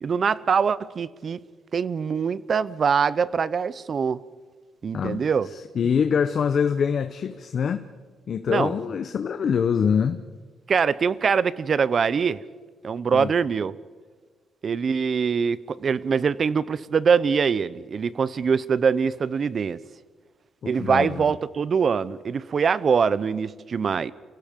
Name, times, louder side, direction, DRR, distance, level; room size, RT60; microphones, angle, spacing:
voice 1, 0.0-1.4 1.7-4.2 4.8-5.5 8.5-8.7 10.7-12.4 12.8-13.7 14.6-19.8 20.7-24.1, right 6 dB, 45° right, 18 dB, 0.7 m, -23 dB
voice 2, 5.5-7.9 8.3-10.2 13.1-13.3 20.8-21.2, left 7 dB, 50° left, 9 dB, 0.8 m, -24 dB
29.5 x 17.0 x 5.3 m, 1.4 s
cardioid pair, 125°, 0 cm